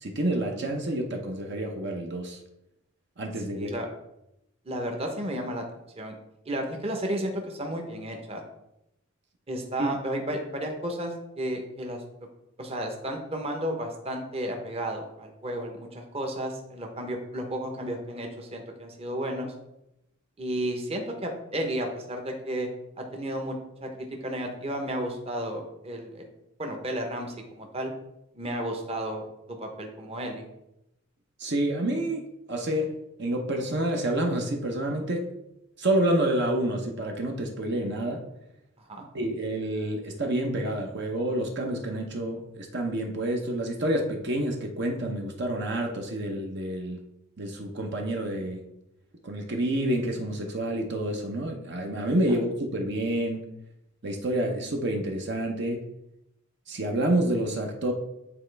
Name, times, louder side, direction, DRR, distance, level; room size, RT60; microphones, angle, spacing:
voice 1, 0.0-2.4 3.2-3.7 9.8-9.9 31.4-35.3 35.8-38.2 39.1-47.0 47.4-48.7 49.2-53.5 54.0-55.8 56.7-57.9, right 1 dB, 55° right, 2 dB, 0.8 m, -28 dB
voice 2, 3.5-3.9 4.6-5.6 6.0-6.2 6.5-8.4 9.5-12.0 12.6-19.5 20.4-22.7 23.0-23.6 23.8-26.3 26.6-27.9 28.3-30.5 38.8-39.0, right 1 dB, 30° right, 3 dB, 0.9 m, -33 dB
8.9 x 4.0 x 3.3 m, 0.87 s
head